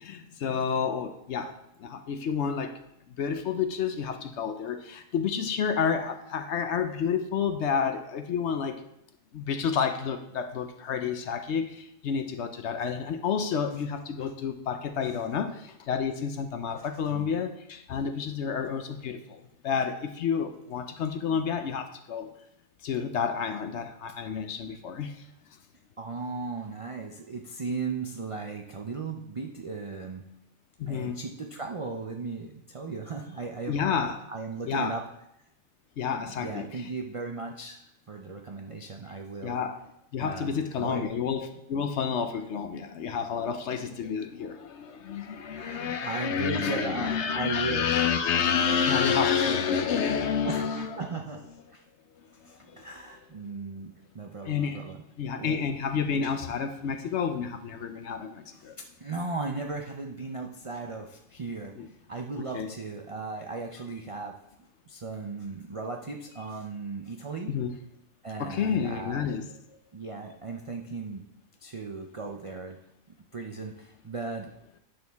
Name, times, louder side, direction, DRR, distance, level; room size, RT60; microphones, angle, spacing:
voice 1, 0.0-2.8 3.2-8.8 9.3-22.3 22.8-25.1 30.8-31.2 33.7-34.2 34.7-35.0 36.0-36.9 39.4-39.8 40.1-50.9 52.7-52.9 54.4-54.8 55.2-58.8 61.8-61.9 62.5-62.7 67.5-67.7 68.4-69.5, left 6 dB, 65° left, 8 dB, 0.9 m, -29 dB
voice 2, 26.0-30.2 30.9-33.8 34.3-35.1 36.4-37.8 38.1-39.6 40.2-41.1 45.4-47.9 50.4-51.4 51.7-51.8 52.4-55.0 55.4-55.6 59.0-64.4 64.9-67.5 68.2-69.4 69.9-71.3 71.6-72.8 73.3-74.5, right 3 dB, 60° right, 2 dB, 0.3 m, -36 dB
9.5 x 6.2 x 3.5 m, 0.80 s
omnidirectional pair, 1.4 m